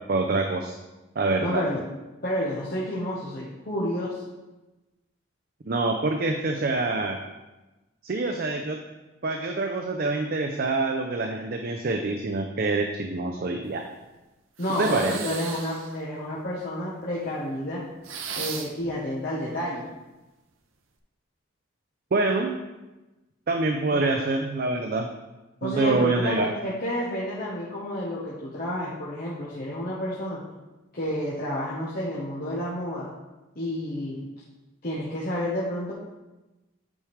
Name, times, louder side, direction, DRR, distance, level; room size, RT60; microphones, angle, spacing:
voice 1, 0.1-0.8 1.2-1.6 5.7-7.2 8.0-8.8 9.2-13.8 14.8-15.1 22.1-22.5 23.5-25.1 25.6-26.5, right 3 dB, 45° right, 3 dB, 0.5 m, -26 dB
voice 2, 1.4-1.8 2.2-4.2 14.6-17.8 18.4-19.9 23.9-24.1 25.6-30.4 30.9-33.1 33.6-34.3 34.8-35.9, left 1 dB, 45° left, -7 dB, 1.1 m, -30 dB
sound 1, 14.6-16.0 18.0-18.9, right 6 dB, 80° right, 0.7 m, -36 dB
8.7 x 4.9 x 3.2 m, 1.1 s
head